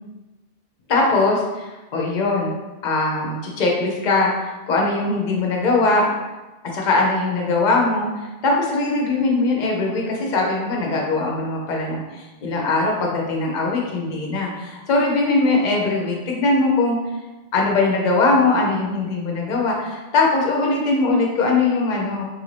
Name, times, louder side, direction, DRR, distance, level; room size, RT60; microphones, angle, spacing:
voice 1, 0.9-2.5 2.8-6.1 6.7-8.1 8.4-17.0 17.5-22.3, left 3 dB, 50° left, -1 dB, 0.7 m, -21 dB
3.1 x 2.5 x 3.2 m, 1.1 s
omnidirectional pair, 1.1 m